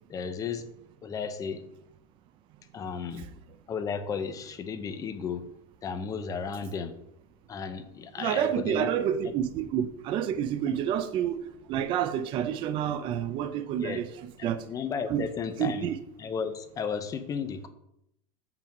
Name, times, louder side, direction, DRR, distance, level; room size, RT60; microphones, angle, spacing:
voice 1, 0.1-0.7 1.0-1.6 2.7-3.3 3.7-5.5 5.8-7.0 7.5-8.9 9.2-9.3 10.7-10.8 13.8-14.0 14.4-17.7, left 6 dB, 20° left, 0.7 m, -34 dB
voice 2, 8.2-11.4 11.7-14.1 14.4-14.6 15.1-15.2 15.6-15.9, right 9 dB, 25° right, 0.5 m, -28 dB
6.9 x 5.9 x 6.0 m
supercardioid pair, 165°, 19 cm